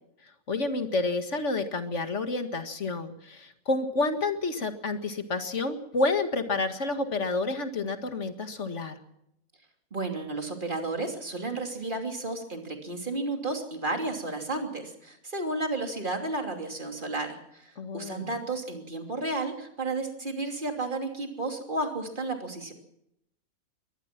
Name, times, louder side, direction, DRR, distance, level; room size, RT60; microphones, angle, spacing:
voice 1, 0.5-9.0 17.8-18.4, left 3 dB, 55° left, 7 dB, 2.1 m, -29 dB
voice 2, 9.9-22.7, right 2 dB, 35° right, 4 dB, 3.2 m, -32 dB
23.5 x 18.5 x 6.0 m, 0.79 s
omnidirectional pair, 1.5 m